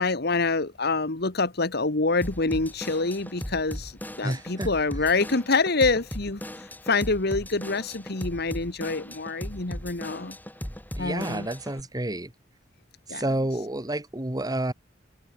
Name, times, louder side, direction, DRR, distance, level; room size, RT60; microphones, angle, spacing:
voice 1, 0.0-6.4 6.9-10.4 11.0-11.5 13.1-13.2, left 3 dB, 60° left, 1.8 m, -26 dB
Drum kit / Drum, 2.2-11.8, equal, 10° left, 2.8 m, -38 dB
voice 2, 4.2-4.7 11.0-12.3 13.1-14.7, right 1 dB, 20° right, 1.9 m, -29 dB
open air
head